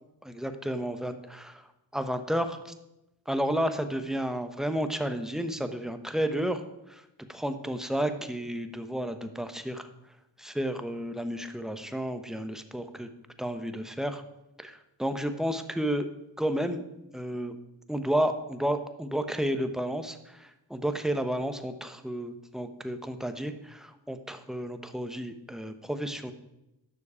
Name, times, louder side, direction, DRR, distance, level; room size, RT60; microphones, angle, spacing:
voice 1, 0.2-1.6 1.9-2.7 3.3-7.0 7.3-9.8 10.4-13.1 13.4-14.2 14.6-16.1 16.4-16.8 17.1-17.6 17.9-26.3, equal, ahead, 8 dB, 0.9 m, -31 dB
9.8 x 6.5 x 4.9 m, 0.90 s
cardioid pair, 40°, 44 cm